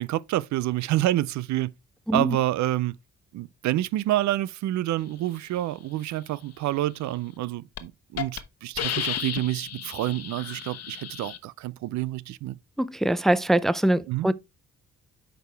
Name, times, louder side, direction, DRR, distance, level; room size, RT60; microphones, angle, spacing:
voice 1, 0.0-1.7 2.1-3.0 3.3-12.6 14.1-14.3, right 15 dB, 70° right, 0.4 m, -28 dB
Hiss, 7.2-7.4 7.8-7.9 8.2-8.4 8.8-11.4, left 9 dB, 55° left, 1.0 m, -33 dB
voice 2, 12.8-14.3, right 1 dB, ahead, 0.4 m, -23 dB
8.9 x 5.0 x 3.3 m
cardioid pair, 90°, 30 cm